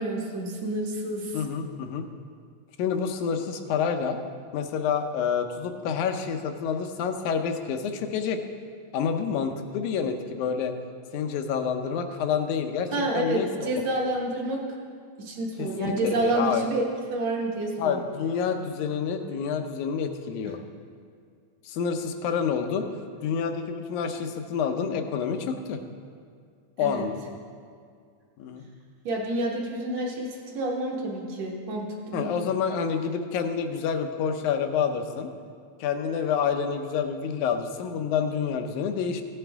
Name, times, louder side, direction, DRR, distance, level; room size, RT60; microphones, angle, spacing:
voice 1, 0.0-1.4 12.9-14.6 15.2-16.8 17.1-18.0 26.8-27.0 29.0-32.3, right 1 dB, 65° right, -2 dB, 2.4 m, -29 dB
voice 2, 1.3-2.1 2.8-4.2 4.5-8.4 8.9-10.7 11.1-12.9 13.1-13.7 15.6-16.7 17.8-20.6 21.7-22.9 23.2-25.8 26.8-27.2 28.4-28.7 32.1-35.3 35.8-39.2, left 6 dB, 85° left, 7 dB, 2.2 m, -28 dB
15.5 x 9.1 x 3.5 m, 2.2 s
omnidirectional pair, 3.4 m